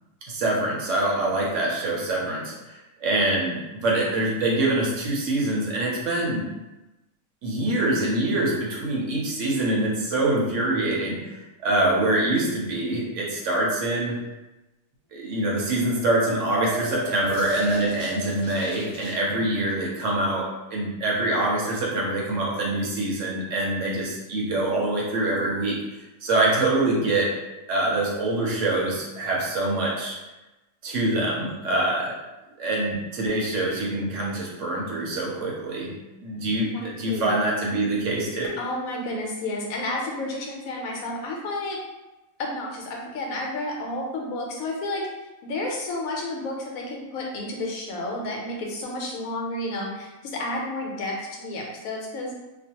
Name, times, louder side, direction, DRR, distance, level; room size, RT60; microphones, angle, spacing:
voice 1, 0.3-6.5 7.4-11.4 11.6-14.2 15.1-25.8 26.2-27.3 27.7-30.2 30.8-32.1 32.6-35.9 36.2-38.5, right 2 dB, 65° right, -3 dB, 0.8 m, -25 dB
sound 1, 15.8-19.1, equal, 50° left, 0.8 m, -33 dB
voice 2, 36.7-37.3 38.6-41.8 42.4-45.1 45.4-52.3, left 2 dB, 80° left, -1 dB, 1.0 m, -31 dB
2.4 x 2.2 x 2.7 m, 1.1 s
omnidirectional pair, 1.5 m